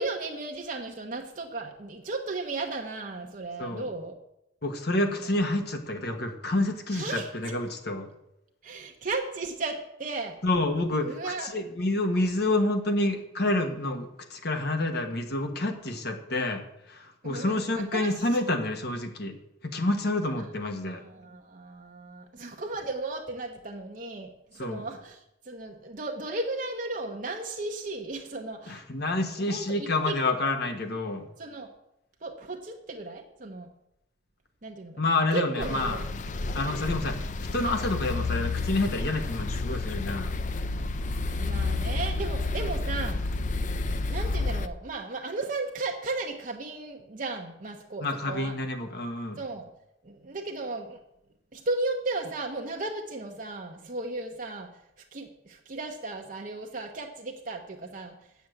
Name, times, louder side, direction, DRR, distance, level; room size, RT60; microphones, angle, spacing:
voice 1, 0.0-4.2 4.9-5.3 6.9-7.6 8.6-10.4 11.0-11.6 17.2-18.4 20.4-20.5 20.9-28.8 29.4-30.2 31.4-31.7 32.2-33.7 34.6-36.0 41.4-43.2 44.1-48.6 49.4-49.7 50.0-51.0 51.5-54.7 55.1-58.2, right 3 dB, 45° right, 2 dB, 0.9 m, -35 dB
voice 2, 4.6-8.1 10.4-16.6 16.9-19.3 19.6-21.0 24.6-24.8 28.7-31.2 35.0-36.0 36.5-37.3 37.5-40.3 48.0-49.4, left 2 dB, 55° left, 6 dB, 1.3 m, -28 dB
sound 1, 35.6-44.7, left 3 dB, 40° left, 0.5 m, -30 dB
8.5 x 7.2 x 7.9 m, 0.84 s
head